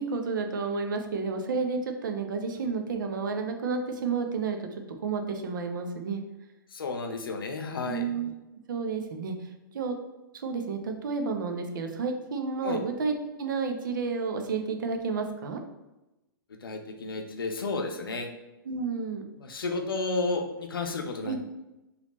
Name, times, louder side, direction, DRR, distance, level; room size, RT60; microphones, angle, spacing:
voice 1, 0.0-4.7 5.0-6.2 7.9-8.3 8.7-9.3 9.7-10.0 10.3-15.6 18.6-19.2 21.2-21.4, right 4 dB, 60° right, 5 dB, 0.7 m, -31 dB
voice 2, 6.7-8.1 12.6-12.8 16.6-18.3 19.4-21.4, left 3 dB, 75° left, 4 dB, 0.6 m, -32 dB
4.0 x 2.9 x 2.9 m, 0.99 s
figure-of-eight pair, 115°, 12 cm